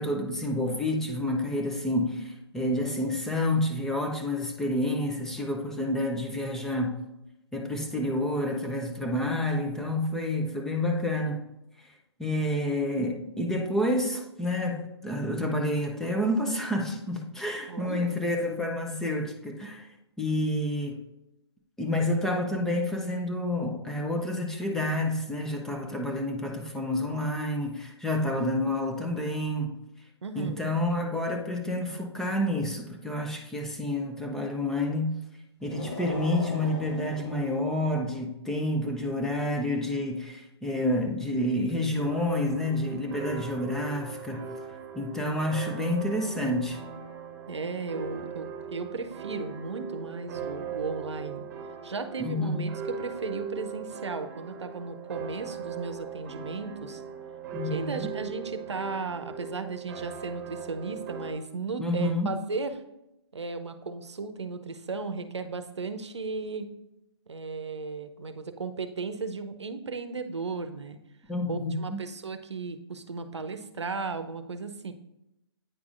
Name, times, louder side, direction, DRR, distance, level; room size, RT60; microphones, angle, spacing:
voice 1, 0.0-7.0 7.5-11.4 12.2-19.9 20.2-21.0 21.8-29.8 30.3-35.2 35.6-44.5 44.9-46.8 52.2-52.7 57.5-58.1 61.8-62.4 71.3-72.0, left 1 dB, 5° left, 1 dB, 0.5 m, -29 dB
voice 2, 17.7-18.1 30.2-30.7 47.5-51.4 51.8-57.0 57.7-62.7 63.3-66.7 67.3-71.0 71.5-74.9, right 4 dB, 85° right, 8 dB, 0.7 m, -35 dB
sound 1, 35.6-38.0, left 1 dB, 85° left, 2.2 m, -39 dB
sound 2, 42.0-61.3, right 7 dB, 40° right, 1.0 m, -39 dB
9.0 x 4.8 x 2.5 m, 0.90 s
hypercardioid pair, 140°, 14 cm